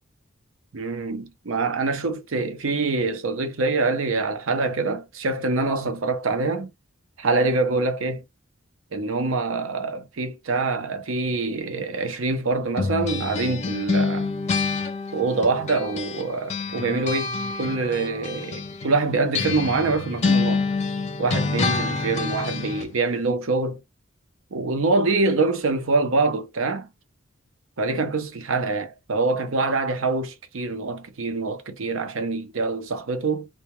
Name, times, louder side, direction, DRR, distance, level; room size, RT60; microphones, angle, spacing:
voice 1, 0.7-6.7 7.2-8.2 8.9-14.3 15.1-20.6 21.2-23.8 24.5-26.9 27.8-33.5, right 3 dB, 70° right, 0.6 m, -25 dB
sound 1, 12.8-16.2 16.5-22.9, left 4 dB, 35° left, 0.5 m, -27 dB
2.2 x 2.1 x 2.9 m
head